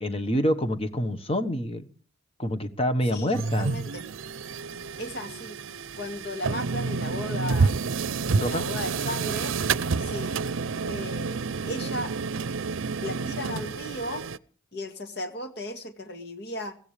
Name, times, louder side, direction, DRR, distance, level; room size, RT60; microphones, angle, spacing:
voice 1, 0.0-1.9 2.4-3.7 8.3-8.6, equal, 30° left, 9 dB, 1.3 m, -27 dB
voice 2, 3.0-4.1 5.0-5.6 6.0-7.8 8.4-9.6 10.0-10.4 10.8-11.4 11.7-12.1 13.0-14.2 14.7-16.8, left 1 dB, 55° left, 7 dB, 2.0 m, -35 dB
sound 1, 3.3-14.4, right 4 dB, 75° right, 0.6 m, -29 dB
21.5 x 16.0 x 3.3 m, 0.42 s
head